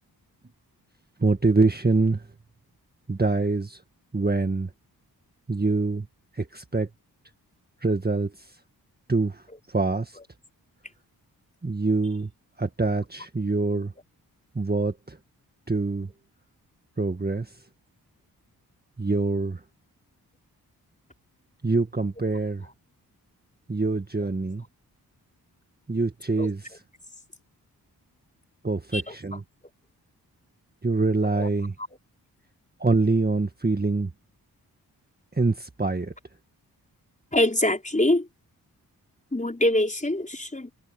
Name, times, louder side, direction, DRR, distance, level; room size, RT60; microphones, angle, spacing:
voice 1, 1.2-2.3 3.1-3.8 4.1-4.7 5.5-6.1 6.3-6.9 7.8-8.5 9.1-9.4 9.7-10.2 11.6-12.3 12.6-13.9 14.6-15.2 15.7-16.1 17.0-17.6 19.0-19.6 21.6-22.7 23.7-24.6 25.9-26.7 28.6-29.4 30.8-31.7 32.8-34.1 35.3-36.1, right 3 dB, 25° right, 1.8 m, -25 dB
voice 2, 37.3-38.3 39.3-40.7, left 1 dB, 20° left, 5.6 m, -24 dB
supercardioid pair, 45°, 40 cm